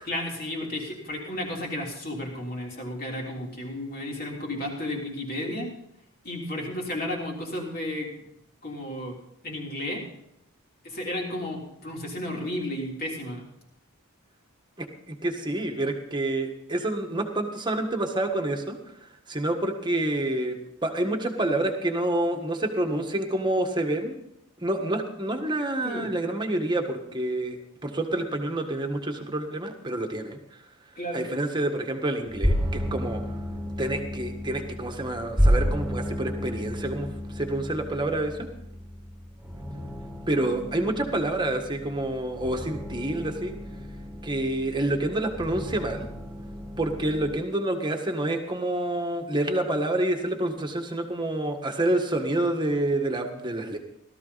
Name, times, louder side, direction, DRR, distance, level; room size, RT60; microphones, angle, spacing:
voice 1, 0.0-5.7 6.2-8.1 8.6-9.2 9.4-10.0 10.8-13.5 25.8-26.1 31.0-31.3, left 1 dB, 45° left, -1 dB, 3.5 m, -33 dB
voice 2, 14.8-18.8 19.3-20.6 20.8-24.2 24.6-30.4 31.1-33.2 33.8-38.5 40.3-43.5 44.2-46.1 46.8-53.8, right 1 dB, 20° right, 4 dB, 1.6 m, -28 dB
sound 1, 32.2-47.4, equal, 5° right, 2.7 m, -31 dB
16.5 x 13.5 x 4.1 m, 0.82 s
head